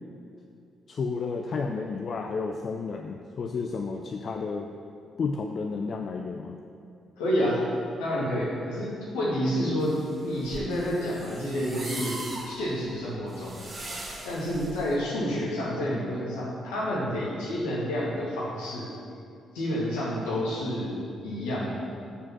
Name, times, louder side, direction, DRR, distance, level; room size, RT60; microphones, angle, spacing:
voice 1, 0.9-4.7 5.2-6.6, left 4 dB, 50° left, 3 dB, 0.5 m, -31 dB
voice 2, 7.2-7.6 8.0-9.9 10.2-12.2 12.5-13.6 14.2-18.9 19.5-21.7, equal, 75° left, -6 dB, 2.1 m, -29 dB
sound 1, 9.8-15.0, right 2 dB, 40° right, 2.2 m, -40 dB
7.0 x 6.0 x 6.0 m, 2.6 s
figure-of-eight pair, 40°, 0 cm